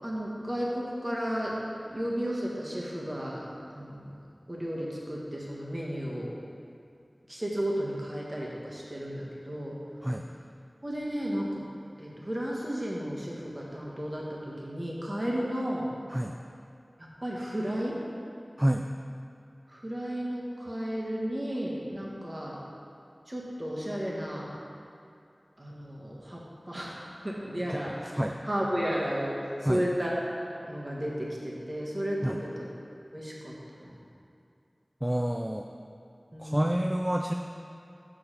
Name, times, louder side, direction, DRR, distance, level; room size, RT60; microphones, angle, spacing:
voice 1, 0.0-1.6 1.9-4.1 4.5-6.3 7.3-9.8 10.8-11.6 12.0-15.9 17.0-18.0 19.7-22.6 23.3-24.5 25.6-28.2 28.4-32.7 33.1-33.5 33.8-34.0 36.3-36.7, equal, 35° right, -4 dB, 1.3 m, -33 dB
voice 2, 35.0-35.7 36.4-37.3, equal, 15° right, 3 dB, 0.3 m, -28 dB
6.1 x 5.1 x 5.6 m, 2.6 s
wide cardioid pair, 55°, 0 cm